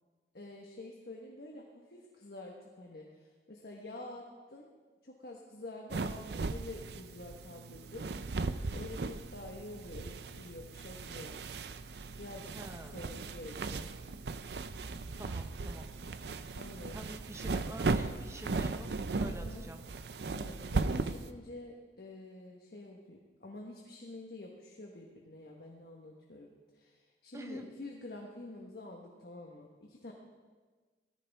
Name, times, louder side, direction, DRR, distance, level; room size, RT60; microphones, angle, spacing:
voice 1, 0.3-4.7 5.0-8.1 8.7-11.4 12.2-13.9 16.5-17.0 19.2-19.7 20.3-30.1, left 2 dB, 60° left, -1 dB, 1.3 m, -48 dB
sound 1, 5.9-21.3, right 3 dB, 65° right, 0.6 m, -37 dB
voice 2, 12.5-13.0 15.2-15.9 16.9-19.8 27.3-27.6, right 1 dB, 15° right, 5 dB, 0.8 m, -46 dB
17.5 x 14.0 x 3.6 m, 1.4 s
head